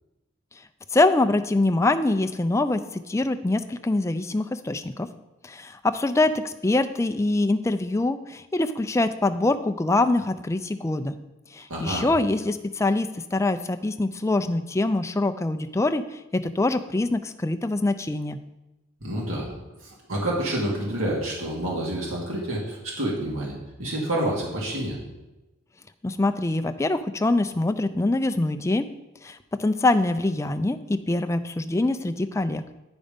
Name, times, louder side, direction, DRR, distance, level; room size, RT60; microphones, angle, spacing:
voice 1, 0.9-5.1 5.4-11.2 11.5-18.4 26.0-28.9 29.2-32.6, left 2 dB, 15° left, 9 dB, 0.3 m, -24 dB
voice 2, 11.7-12.1 19.0-19.5 19.8-25.0, right 1 dB, 90° right, -3 dB, 2.2 m, -28 dB
9.9 x 5.2 x 5.2 m, 1.0 s
head